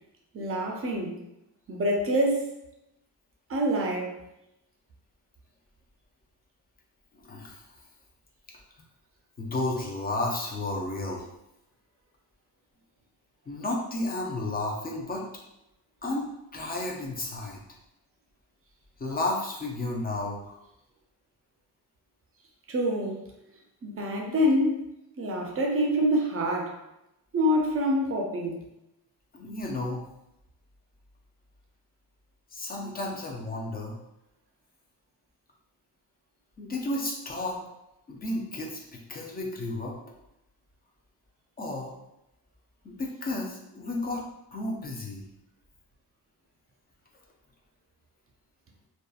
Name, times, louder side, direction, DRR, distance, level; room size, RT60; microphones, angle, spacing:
voice 1, 0.3-1.2 1.7-2.5 3.5-4.2 22.7-23.2 23.8-24.9 25.2-26.8 27.3-28.6, equal, 35° right, 0 dB, 0.4 m, -26 dB
voice 2, 7.1-7.7 9.4-11.3 13.5-15.2 16.0-16.3 16.5-17.6 19.0-20.6 29.3-30.1 32.5-34.0 36.6-37.6 38.1-40.0 41.6-41.9 42.8-44.2 44.5-45.2, left 2 dB, 25° left, -1 dB, 0.4 m, -32 dB
2.7 x 2.2 x 2.3 m, 0.87 s
wide cardioid pair, 145°, 40 cm